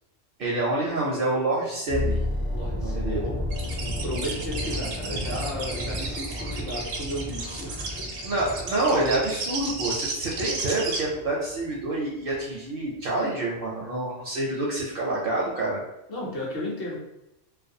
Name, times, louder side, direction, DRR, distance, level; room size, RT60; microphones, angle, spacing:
voice 1, 0.4-2.2 2.8-3.2 8.2-15.8, right 2 dB, 60° right, -4 dB, 0.6 m, -27 dB
sound 1, 1.9-11.9 12.1-12.4, left 1 dB, 15° left, 0.4 m, -33 dB
voice 2, 2.5-3.3 3.8-8.0 16.1-17.0, left 1 dB, 55° left, -4 dB, 0.8 m, -34 dB
sound 2, 3.5-11.0, right 3 dB, 85° right, 0.9 m, -33 dB
2.4 x 2.1 x 2.6 m, 0.87 s
omnidirectional pair, 1.3 m